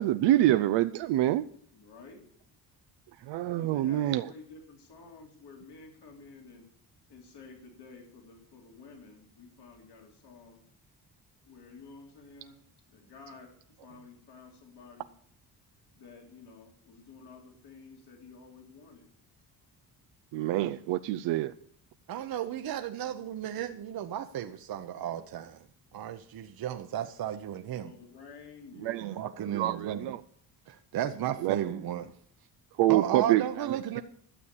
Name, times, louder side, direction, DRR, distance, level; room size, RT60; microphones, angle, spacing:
voice 1, 0.0-1.5 3.3-4.3 20.3-21.5 28.8-29.2 29.5-30.2 31.4-31.6 32.8-33.4, right 14 dB, 90° right, 11 dB, 0.6 m, -26 dB
voice 2, 1.7-2.3 3.4-6.6 7.1-10.6 11.4-12.6 12.9-13.5 13.8-15.1 15.9-19.0 27.8-29.2, left 4 dB, 70° left, 1 dB, 3.4 m, -51 dB
voice 3, 22.1-25.7 25.9-27.9 29.2-30.1 30.7-32.1 32.9-34.0, right 10 dB, 60° right, 7 dB, 0.8 m, -34 dB
12.5 x 7.1 x 8.3 m, 0.62 s
cardioid pair, 90°, 41 cm